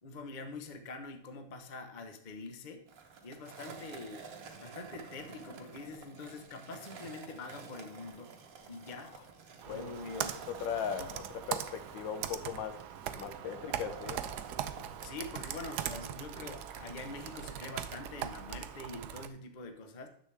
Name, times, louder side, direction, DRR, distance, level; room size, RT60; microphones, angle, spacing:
voice 1, 0.0-2.9 3.2-4.3 4.6-8.3 8.7-9.2 9.6-10.4 11.0-11.1 15.0-20.1, left 3 dB, 50° left, 6 dB, 0.5 m, -45 dB
Skateboard, 2.9-17.5, right 5 dB, 50° right, 1.3 m, -50 dB
Computer keyboard, 9.6-19.3, right 10 dB, 75° right, 1.0 m, -41 dB
voice 2, 9.7-12.8 13.2-14.2, left 7 dB, 70° left, 10 dB, 1.3 m, -39 dB
10.0 x 7.5 x 3.3 m, 0.70 s
omnidirectional pair, 2.3 m